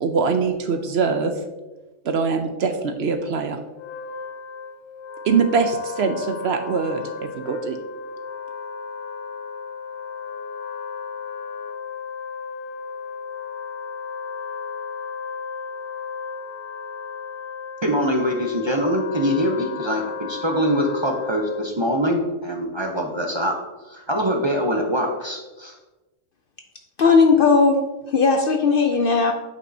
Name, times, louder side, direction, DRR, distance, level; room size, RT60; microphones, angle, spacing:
voice 1, 0.0-1.3 2.0-3.6 5.2-7.0 7.5-7.8, right 5 dB, 60° right, 6 dB, 0.8 m, -22 dB
Wind instrument woodwind instrument, 3.7-21.8, left 5 dB, 85° left, 1.0 m, -34 dB
voice 2, 17.8-23.6 23.8-25.8, equal, 30° right, 2 dB, 0.5 m, -23 dB
voice 3, 27.0-27.8 28.1-29.3, left 4 dB, 60° left, 5 dB, 0.6 m, -17 dB
9.3 x 5.3 x 2.7 m, 1.1 s
omnidirectional pair, 1.3 m